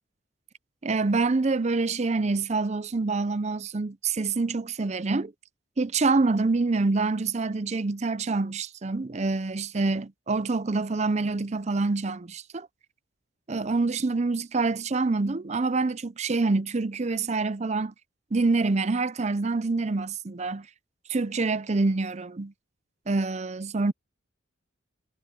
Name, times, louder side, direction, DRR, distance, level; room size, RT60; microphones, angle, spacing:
voice 1, 0.8-5.3 5.8-12.7 13.5-17.9 18.3-20.7 21.1-22.5 23.1-23.9, right 3 dB, 35° right, 0.5 m, -26 dB
head